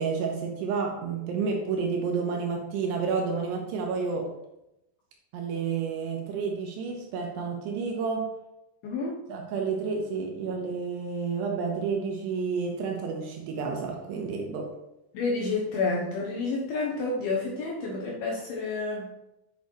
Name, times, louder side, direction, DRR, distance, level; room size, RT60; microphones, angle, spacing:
voice 1, 0.0-4.3 5.3-8.3 9.3-14.7, right 5 dB, 75° right, 1 dB, 2.7 m, -30 dB
voice 2, 8.8-9.2 15.1-19.1, left 3 dB, 75° left, -2 dB, 2.4 m, -29 dB
8.1 x 6.7 x 3.1 m, 0.88 s
omnidirectional pair, 5.4 m